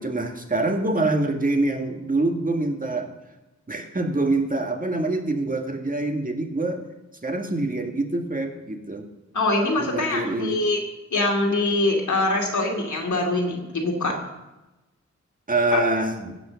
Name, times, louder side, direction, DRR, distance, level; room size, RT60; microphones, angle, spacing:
voice 1, 0.0-3.1 3.7-6.8 7.2-9.1 9.8-10.6 15.5-16.3, right 2 dB, 30° right, 3 dB, 1.7 m, -25 dB
voice 2, 9.3-10.8 11.1-14.2 15.7-15.8, left 2 dB, 90° left, 1 dB, 2.6 m, -23 dB
16.5 x 6.0 x 6.9 m, 1.0 s
wide cardioid pair, 90°, 29 cm